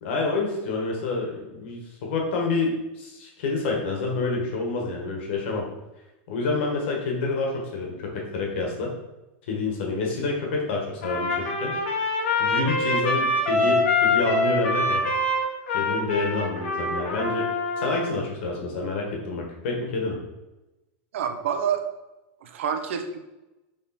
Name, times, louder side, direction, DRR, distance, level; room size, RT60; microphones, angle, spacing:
voice 1, 0.0-5.7 6.3-8.9 9.5-11.7 12.4-15.1 15.7-17.5 17.8-20.2, left 3 dB, 65° left, 0 dB, 1.5 m, -28 dB
Trumpet, 11.0-18.1, left 2 dB, 90° left, 1.3 m, -25 dB
voice 2, 21.1-21.8 22.4-23.2, right 7 dB, 90° right, 7 dB, 0.8 m, -27 dB
6.5 x 3.7 x 4.2 m, 1.0 s
supercardioid pair, 165°, 7 cm